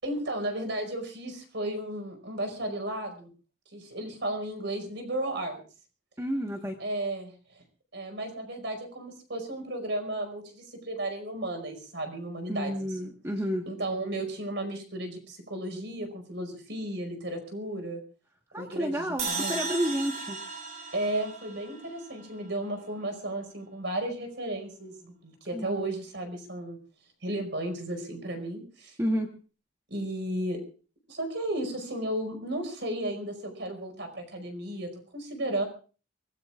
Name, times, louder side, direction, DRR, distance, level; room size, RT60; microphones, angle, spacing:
voice 1, 0.0-3.3 3.7-5.6 6.8-7.6 7.9-12.9 13.7-18.0 18.6-19.6 20.9-26.8 27.2-29.0 29.9-30.6 31.1-35.6, right 1 dB, 65° right, 6 dB, 5.0 m, -34 dB
voice 2, 6.2-6.8 12.5-13.6 18.5-20.4 25.5-25.8 29.0-29.3, equal, 15° right, 2 dB, 1.4 m, -30 dB
sound 1, 19.2-22.4, right 4 dB, 35° right, 7.1 m, -36 dB
25.0 x 20.0 x 2.5 m, 0.37 s
head